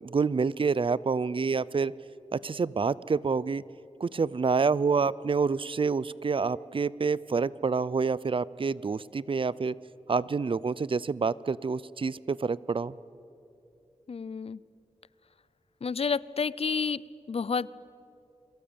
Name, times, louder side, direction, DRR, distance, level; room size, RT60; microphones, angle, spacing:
voice 1, 0.0-1.9 2.3-3.6 4.0-9.7 10.1-12.9, right 5 dB, 45° right, 20 dB, 0.5 m, -27 dB
voice 2, 14.1-14.6 15.8-17.0 17.3-17.7, left 5 dB, 55° left, 20 dB, 0.5 m, -30 dB
30.0 x 22.5 x 8.8 m, 2.9 s
wide cardioid pair, 100°, 12 cm